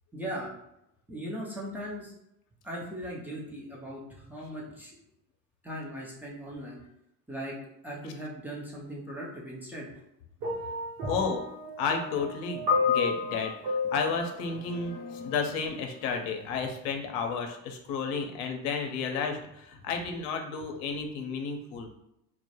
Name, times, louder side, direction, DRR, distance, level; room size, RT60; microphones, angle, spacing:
voice 1, 0.1-0.5 1.1-2.1 2.6-5.0 5.6-6.8 7.3-7.5 7.8-9.9 11.0-11.1, equal, 5° right, -5 dB, 0.3 m, -38 dB
sound 1, 10.4-15.5 16.4-16.6, left 4 dB, 85° right, 0.7 m, -32 dB
voice 2, 11.1-11.4 11.8-21.9, left 5 dB, 55° left, 4 dB, 0.6 m, -32 dB
2.1 x 2.0 x 2.8 m, 0.82 s
hypercardioid pair, 65°, 50 cm